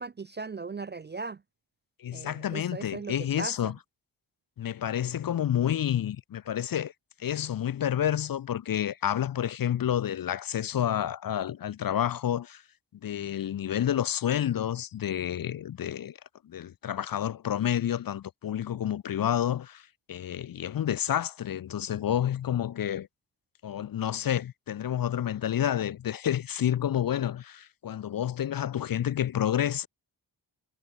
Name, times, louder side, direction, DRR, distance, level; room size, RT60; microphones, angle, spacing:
voice 1, 0.0-1.4 2.1-3.7, right 4 dB, 25° right, 0.3 m, -38 dB
voice 2, 2.0-3.7 4.6-6.9 7.2-12.6 13.0-16.2 16.4-23.1 23.6-29.9, left 10 dB, 50° left, 0.5 m, -29 dB
cardioid pair, 60°, 44 cm